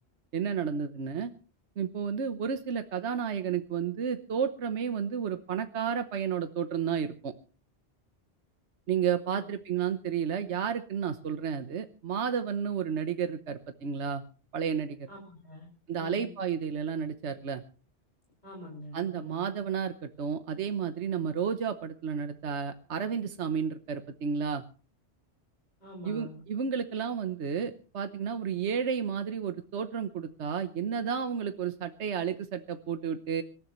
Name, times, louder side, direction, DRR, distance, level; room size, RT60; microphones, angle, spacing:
voice 1, 0.3-1.3 1.8-7.3 8.9-14.2 14.5-15.1 15.9-17.6 18.9-24.6 26.0-33.4, right 7 dB, 75° right, 9 dB, 1.3 m, -32 dB
voice 2, 15.1-15.7 16.0-16.3 18.4-19.5 25.8-26.4, left 1 dB, 40° left, -2 dB, 6.1 m, -45 dB
25.5 x 13.5 x 3.1 m, 0.37 s
omnidirectional pair, 1.2 m